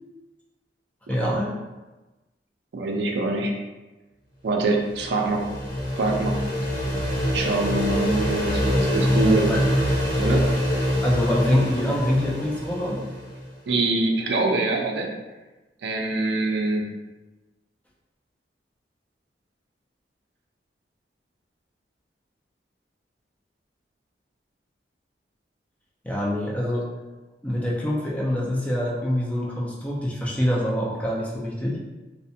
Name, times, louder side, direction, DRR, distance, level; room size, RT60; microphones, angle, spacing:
voice 1, 1.1-1.5 9.1-9.6 11.0-13.0 26.0-26.9 27.4-31.8, left 1 dB, 10° left, -4 dB, 0.3 m, -25 dB
voice 2, 2.7-3.5 4.4-5.4 6.0-6.4 7.3-9.5 10.2-10.5 13.7-15.1 15.8-16.9, right 2 dB, 65° right, 2 dB, 0.4 m, -24 dB
sound 1, 4.6-13.4, equal, 50° left, 0.6 m, -25 dB
2.5 x 2.1 x 2.6 m, 1.1 s
head